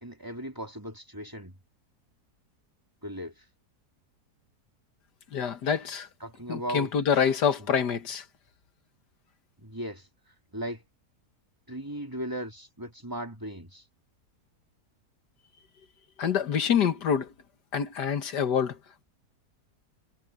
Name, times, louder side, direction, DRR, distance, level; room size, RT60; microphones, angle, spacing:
voice 1, 0.0-1.5 3.0-3.4 6.2-6.9 9.6-10.1 10.5-10.8 11.7-13.8, equal, 10° right, 3.0 m, -37 dB
voice 2, 5.3-6.1 6.5-8.2 16.2-17.3 17.7-18.8, left 7 dB, 90° left, 2.1 m, -26 dB
omnidirectional pair, 1.7 m